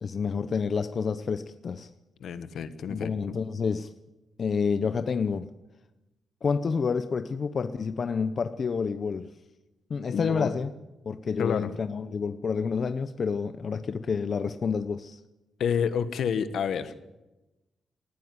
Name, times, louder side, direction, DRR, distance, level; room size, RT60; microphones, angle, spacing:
voice 1, 0.0-1.9 2.9-3.9 4.4-5.5 6.4-9.3 9.9-10.7 11.0-15.2, left 5 dB, 40° left, 11 dB, 0.7 m, -29 dB
voice 2, 2.2-3.4 10.1-10.5 11.4-11.7 15.6-16.9, left 7 dB, 70° left, 12 dB, 1.5 m, -29 dB
19.0 x 14.5 x 9.6 m, 1.0 s
wide cardioid pair, 140°, 0 cm